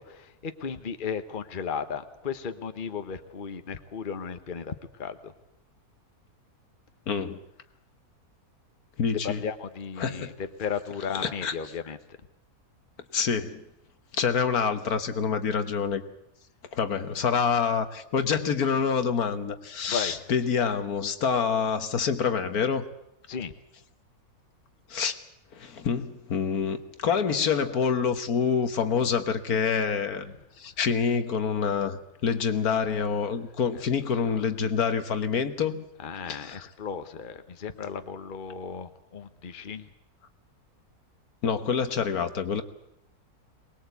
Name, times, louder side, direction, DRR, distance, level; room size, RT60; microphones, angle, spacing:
voice 1, 0.0-5.3 9.2-10.3 10.6-12.0 19.9-20.2 23.3-23.5 36.0-39.9, left 6 dB, 35° left, 9 dB, 1.2 m, -35 dB
voice 2, 7.1-7.4 9.0-9.4 10.0-10.3 11.1-11.5 13.1-13.6 14.1-16.0 16.7-22.9 24.9-25.1 25.5-35.9 36.3-36.7 41.4-42.6, left 6 dB, 70° left, 9 dB, 1.7 m, -27 dB
23.5 x 20.0 x 8.3 m, 0.81 s
omnidirectional pair, 1.6 m